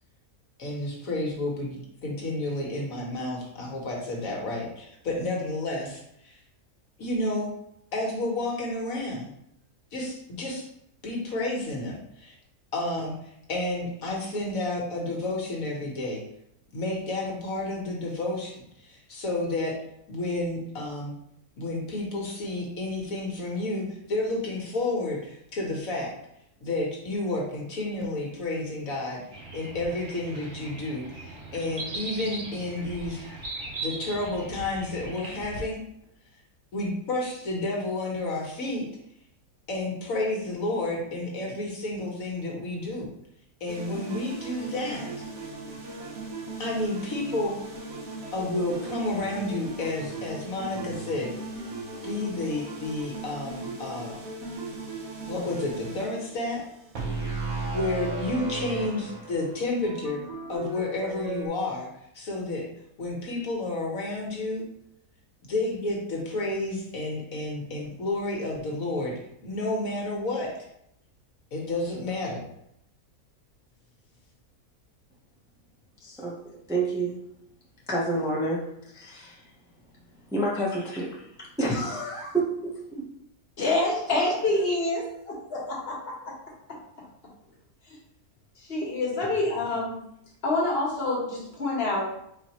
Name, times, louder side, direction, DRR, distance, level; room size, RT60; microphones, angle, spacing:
voice 1, 0.6-6.4 7.0-7.5 7.9-9.3 9.9-10.7 11.0-12.3 12.7-13.1 13.5-16.2 16.7-19.8 20.1-21.1 21.6-26.1 26.6-29.2 29.5-33.2 33.8-35.8 36.7-38.9 39.7-43.1 43.6-45.1 46.6-47.6 48.3-51.3 52.0-54.2 55.2-56.6 57.7-60.2 60.5-61.9 62.1-62.7 63.0-64.7 65.5-70.5 71.5-72.4, left 2 dB, 65° left, -2 dB, 1.4 m, -31 dB
sound 1, 29.3-35.6, right 2 dB, 40° right, 0.9 m, -39 dB
sound 2, 43.7-61.5, right 2 dB, 65° right, 1.5 m, -37 dB
voice 2, 76.0-76.4 76.7-77.2 77.9-79.4 80.3-83.0, right 2 dB, 5° right, -5 dB, 0.7 m, -29 dB
voice 3, 83.6-86.3 86.7-86.8 88.7-90.0 90.4-92.0, left 2 dB, 45° left, -3 dB, 1.4 m, -27 dB
4.3 x 4.2 x 3.0 m, 0.75 s
omnidirectional pair, 1.6 m